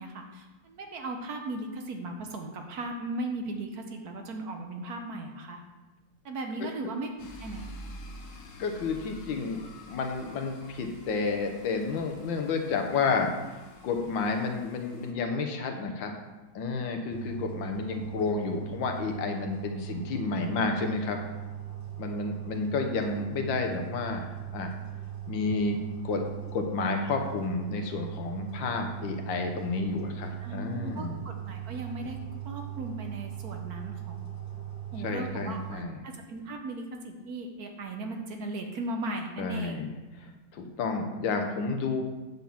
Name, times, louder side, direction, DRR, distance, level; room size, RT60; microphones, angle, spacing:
voice 1, 0.0-5.6 6.2-7.1 7.4-7.6 30.4-32.2 32.4-34.3 34.9-39.8, right 2 dB, 60° right, 3 dB, 1.2 m, -37 dB
sound 1, 7.2-15.1, equal, 50° left, 1.2 m, -48 dB
voice 2, 8.6-13.3 13.8-16.1 16.6-21.2 22.0-24.7 25.3-25.8 26.0-26.2 26.5-31.2 35.0-36.0 39.4-42.0, left 4 dB, 85° left, 4 dB, 1.7 m, -31 dB
sound 2, 17.1-35.7, right 11 dB, 10° right, 0.9 m, -39 dB
8.9 x 4.0 x 7.0 m, 1.1 s
omnidirectional pair, 2.0 m